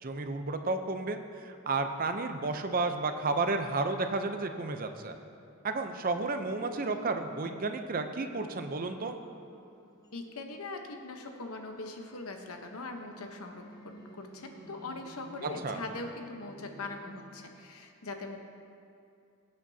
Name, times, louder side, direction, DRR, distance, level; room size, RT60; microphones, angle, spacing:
voice 1, 0.0-5.1 5.6-9.2 15.4-15.8, right 3 dB, 40° right, 7 dB, 0.6 m, -32 dB
sound 1, 6.5-17.2, right 1 dB, 15° left, 0.9 m, -53 dB
voice 2, 10.1-18.4, left 2 dB, 85° left, 4 dB, 1.0 m, -41 dB
17.0 x 8.6 x 2.8 m, 2.5 s
head